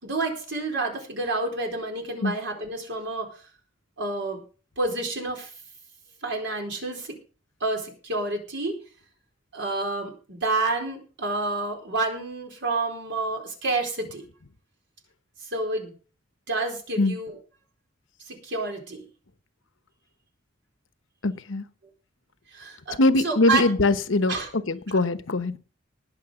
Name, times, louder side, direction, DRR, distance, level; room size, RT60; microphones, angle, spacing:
voice 1, 0.0-3.4 4.0-4.4 4.8-5.5 6.2-7.2 7.6-8.8 9.5-14.3 15.4-15.9 16.5-17.4 18.2-19.1 22.5-23.6 24.3-24.5 24.9-25.1, right 3 dB, 65° right, 4.4 m, -29 dB
voice 2, 21.2-21.6 23.0-24.3 24.7-25.6, left 2 dB, 80° left, 1.0 m, -22 dB
19.5 x 6.6 x 5.1 m
head